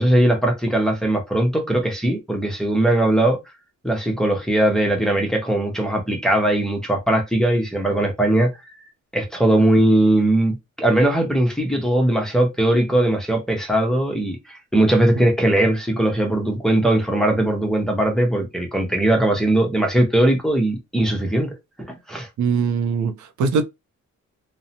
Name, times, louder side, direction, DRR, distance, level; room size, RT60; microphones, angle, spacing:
voice 1, 0.0-3.4 3.8-8.5 9.1-21.5 21.8-22.3, right 1 dB, ahead, 0.7 m, -19 dB
voice 2, 22.4-23.6, right 5 dB, 75° right, 0.5 m, -21 dB
2.7 x 2.0 x 2.7 m
wide cardioid pair, 135°, 29 cm